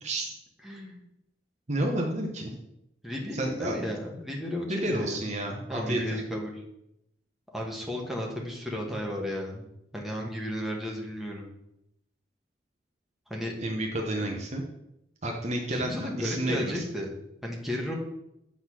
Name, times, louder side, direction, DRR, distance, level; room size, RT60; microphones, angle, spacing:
voice 1, 0.0-0.3 1.7-2.5 3.3-3.8 4.7-6.2 13.6-14.6 15.2-16.8, right 1 dB, 40° right, 1 dB, 1.0 m, -30 dB
voice 2, 0.6-1.0 3.0-5.2 5.7-6.6 7.5-9.7 9.9-11.5 13.3-13.5 15.7-17.1 17.4-17.9, left 1 dB, ahead, -2 dB, 1.4 m, -34 dB
8.3 x 3.9 x 6.1 m, 0.82 s
head